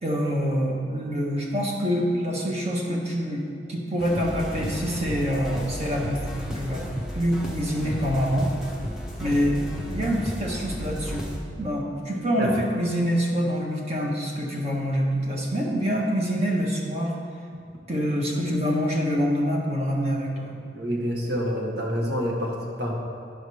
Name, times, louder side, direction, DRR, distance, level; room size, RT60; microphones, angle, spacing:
voice 1, 0.0-3.4 3.7-6.2 6.5-6.8 7.1-8.5 9.2-9.6 9.9-11.3 11.6-17.1 17.9-20.6, equal, 35° right, -2 dB, 1.4 m, -26 dB
sound 1, 4.0-11.4, equal, 5° right, 0.9 m, -33 dB
voice 2, 20.7-23.0, equal, 60° right, -2 dB, 1.7 m, -27 dB
10.0 x 5.2 x 6.4 m, 2.3 s
head